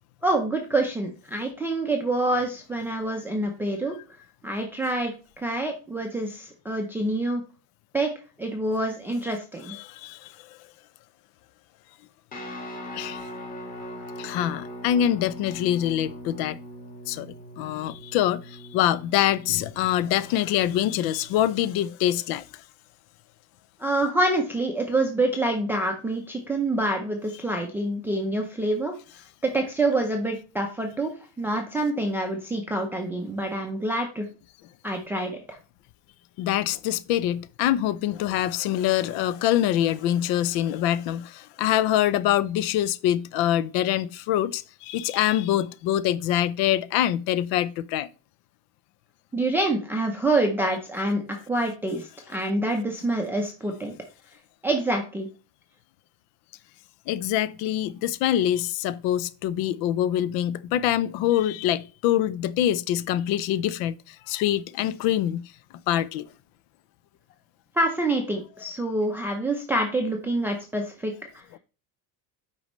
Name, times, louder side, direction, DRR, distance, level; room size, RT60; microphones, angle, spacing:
voice 1, 0.2-4.0 4.4-7.4 7.9-8.1 8.4-9.8 23.8-28.9 29.4-31.1 31.4-34.3 34.8-35.6 49.3-53.9 54.6-55.3 67.7-71.4, right 2 dB, 5° right, 0.5 m, -26 dB
voice 2, 9.7-10.6 12.9-13.3 14.2-16.6 17.1-22.6 36.4-48.1 57.1-65.5 65.9-66.3 71.5-71.6, left 12 dB, 65° left, 0.5 m, -25 dB
Guitar, 12.3-21.7, equal, 20° left, 1.6 m, -41 dB
8.5 x 5.3 x 3.0 m
cardioid pair, 180°, 40 cm